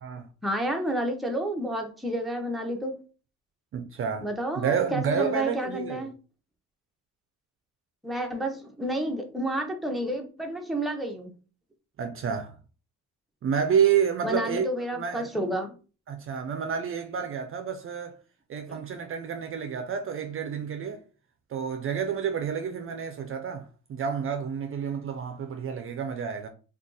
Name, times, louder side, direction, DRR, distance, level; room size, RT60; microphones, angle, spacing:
voice 1, 0.4-2.9 4.2-6.1 8.0-11.3 14.2-15.7 18.7-18.8, right 1 dB, ahead, 0.7 m, -30 dB
voice 2, 3.7-4.3 4.6-6.1 12.0-12.6 13.4-15.3 16.1-18.2 18.5-21.0 21.5-26.5, right 7 dB, 45° right, 0.5 m, -29 dB
2.5 x 2.4 x 3.8 m
cardioid pair, 90°, 30 cm